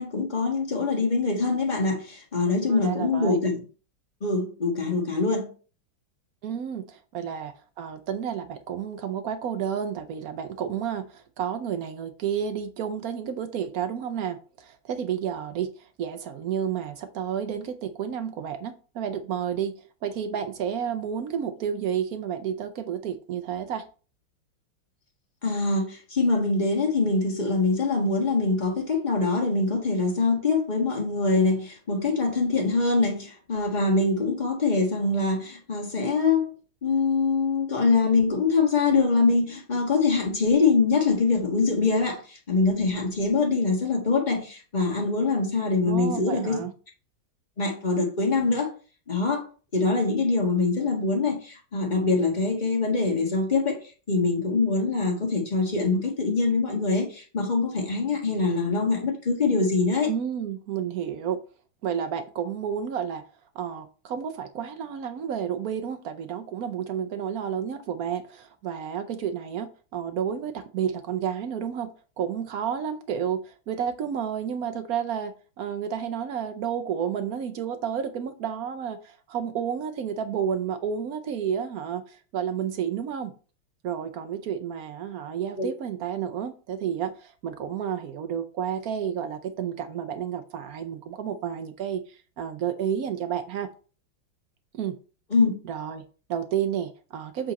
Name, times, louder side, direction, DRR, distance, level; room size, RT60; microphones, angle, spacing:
voice 1, 0.0-3.6 4.2-5.5 25.4-36.5 36.8-46.7 47.6-48.7 49.1-49.4 49.7-53.8 54.1-60.1 85.6-85.7 95.3-95.5, left 3 dB, 25° left, 1.3 m, -24 dB
voice 2, 2.7-3.4 6.4-23.9 45.8-46.7 60.1-61.4 61.8-63.2 63.5-83.3 83.8-93.7 94.7-95.0 95.6-97.5, right 8 dB, 75° right, 0.8 m, -31 dB
7.8 x 3.7 x 4.1 m
omnidirectional pair, 2.3 m